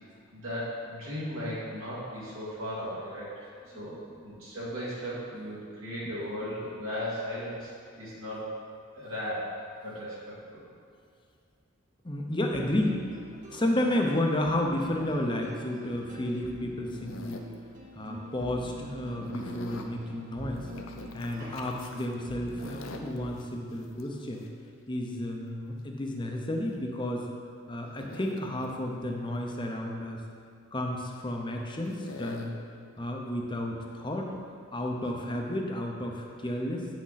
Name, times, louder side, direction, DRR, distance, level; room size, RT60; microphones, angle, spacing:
voice 1, 0.3-3.5 3.7-8.5 9.0-10.6 21.4-21.6, equal, 70° right, -8 dB, 2.1 m, -36 dB
voice 2, 12.0-13.0 13.5-17.4 17.9-20.7 21.1-24.4 24.9-27.2 27.7-30.2 30.7-32.5 33.0-34.3 34.7-36.9, left 1 dB, 20° left, 1 dB, 0.7 m, -32 dB
sound 1, 12.5-23.2, equal, 35° right, 0.8 m, -45 dB
sound 2, 16.9-17.5 19.2-19.9 20.6-22.1 22.5-24.5 26.7-26.8 28.0-28.7 31.9-32.5 33.8-34.0 35.0-35.1, left 2 dB, 65° left, 0.6 m, -44 dB
8.7 x 6.3 x 4.1 m, 2.3 s
head